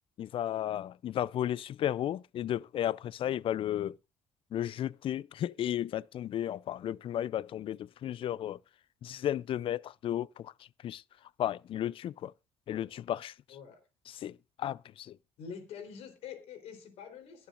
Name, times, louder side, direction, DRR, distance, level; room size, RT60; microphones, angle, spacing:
voice 1, 0.2-4.0 4.5-8.6 9.0-11.0 11.4-12.3 12.7-13.3 14.1-15.2, left 11 dB, 55° left, 0.5 m, -34 dB
voice 2, 13.5-13.8 15.4-17.5, left 7 dB, 70° left, 3.8 m, -45 dB
22.0 x 7.3 x 2.5 m
supercardioid pair, 70°, 11 cm